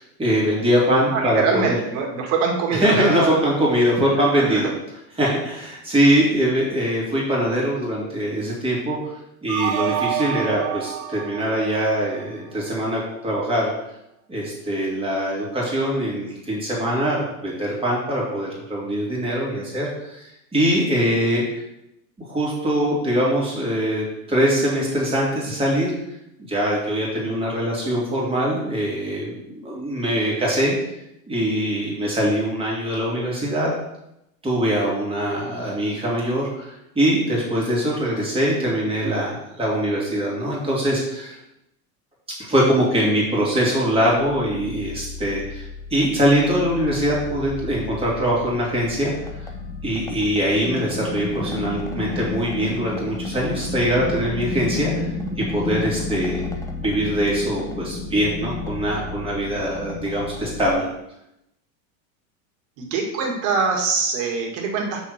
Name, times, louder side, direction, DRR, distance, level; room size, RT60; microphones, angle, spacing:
voice 1, 0.0-1.8 2.7-4.7 5.2-9.0 9.4-13.7 14.3-20.2 20.5-21.4 22.2-25.9 26.5-30.8 31.3-33.7 34.4-41.4 42.5-49.1 49.8-55.1 55.5-56.4 56.8-60.9, equal, 15° right, -5 dB, 2.7 m, -22 dB
voice 2, 1.1-3.4 4.4-4.7 62.8-65.1, right 5 dB, 60° right, 0 dB, 2.2 m, -24 dB
sound 1, 9.5-12.6, right 10 dB, 85° right, 0.8 m, -28 dB
sound 2, 43.8-60.7, left 3 dB, 10° left, 0.8 m, -32 dB
6.1 x 4.5 x 6.6 m, 0.84 s
supercardioid pair, 130°, 42 cm